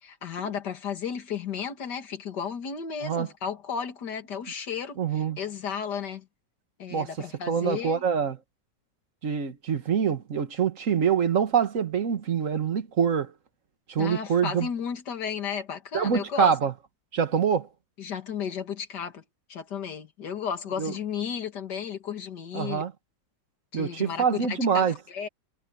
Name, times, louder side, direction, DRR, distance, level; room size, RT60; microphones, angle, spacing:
voice 1, 0.0-6.3 6.8-8.0 14.0-16.5 18.0-19.2 19.5-22.8 23.7-25.3, left 7 dB, 70° left, 2.5 m, -34 dB
voice 2, 5.0-5.4 6.9-7.1 7.5-8.4 9.2-13.3 13.9-14.7 15.9-16.7 17.1-17.7 20.8-20.9 22.5-22.9 23.7-25.0, right 7 dB, 50° right, 1.8 m, -25 dB
omnidirectional pair, 1.9 m